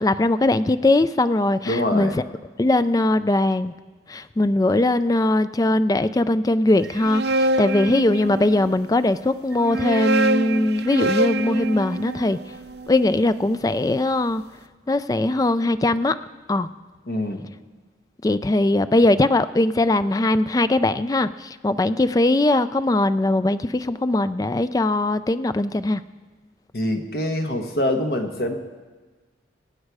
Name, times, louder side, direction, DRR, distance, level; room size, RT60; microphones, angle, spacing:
voice 1, 0.0-2.2 2.6-3.8 4.1-12.4 12.9-14.4 14.9-16.2 16.5-16.7 18.2-26.0, left 2 dB, 20° left, 13 dB, 0.3 m, -20 dB
voice 2, 1.6-2.2 17.1-17.5 26.7-28.5, left 1 dB, 55° left, 4 dB, 1.4 m, -24 dB
sound 1, 6.8-8.7 9.5-13.7, right 2 dB, 65° right, 0.6 m, -25 dB
22.5 x 8.5 x 4.8 m, 1.3 s
head